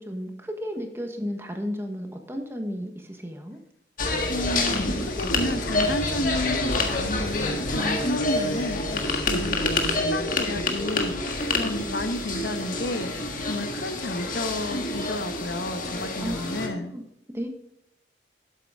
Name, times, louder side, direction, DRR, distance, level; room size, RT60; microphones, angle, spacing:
voice 1, 0.0-3.6 16.2-17.0 17.3-17.5, equal, 15° right, 4 dB, 1.2 m, -33 dB
sound 1, 4.0-16.7, left 2 dB, 50° left, 1.6 m, -27 dB
voice 2, 4.3-11.3 11.6-16.9, left 1 dB, 70° left, 8 dB, 1.1 m, -31 dB
11.5 x 8.4 x 3.6 m, 0.79 s
head